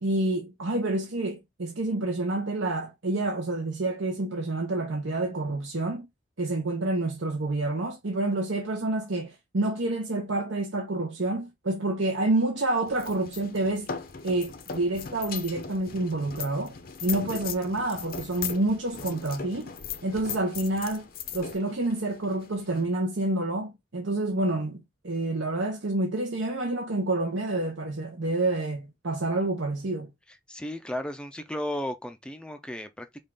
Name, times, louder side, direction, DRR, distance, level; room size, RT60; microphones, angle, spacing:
voice 1, 0.0-6.1 6.4-13.9 14.2-16.8 17.0-19.7 20.0-21.1 21.3-24.8 25.0-30.1, right 2 dB, 85° right, 1.0 m, -28 dB
sound 1, 12.9-22.9, left 7 dB, 50° left, 0.7 m, -38 dB
voice 2, 30.5-33.2, left 1 dB, 5° left, 0.4 m, -34 dB
5.3 x 2.4 x 3.7 m
head